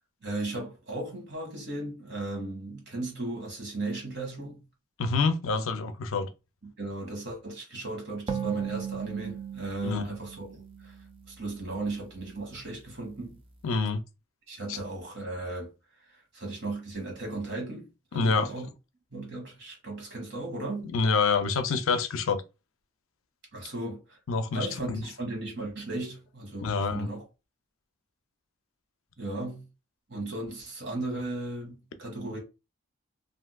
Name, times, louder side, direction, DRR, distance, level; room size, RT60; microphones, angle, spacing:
voice 1, 0.2-4.6 6.6-11.0 11.3-13.4 14.5-15.7 16.1-18.7 19.1-20.9 23.5-24.2 24.5-27.3 29.2-29.6 30.1-32.4, right 2 dB, 55° right, 1.3 m, -36 dB
voice 2, 5.0-6.3 9.8-10.0 13.6-14.0 14.7-14.8 18.1-18.5 20.8-22.4 24.3-25.0 26.6-27.1, left 4 dB, 75° left, 0.5 m, -27 dB
sound 1, 8.3-11.8, right 7 dB, 25° right, 0.3 m, -37 dB
3.5 x 2.6 x 2.2 m
head